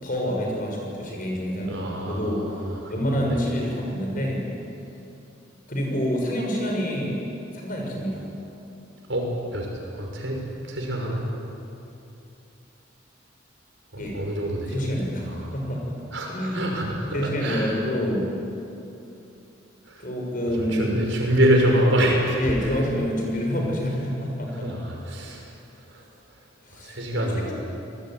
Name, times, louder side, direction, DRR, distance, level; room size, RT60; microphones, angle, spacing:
voice 1, 0.0-2.6 2.9-4.4 5.7-7.2 7.5-8.2 14.0-14.2 14.7-16.0 16.3-16.8 17.1-18.3 20.0-20.9 22.4-24.7 26.6-27.5, equal, 45° left, -1 dB, 6.8 m, -27 dB
voice 2, 1.6-2.8 9.1-9.7 9.9-11.3 13.9-14.7 15.3-15.5 16.1-17.8 19.9-20.0 20.7-22.4 24.6-25.4 25.9-26.0 26.8-27.5, right 1 dB, 65° right, 0 dB, 6.2 m, -25 dB
27.0 x 19.5 x 9.6 m, 2.7 s
head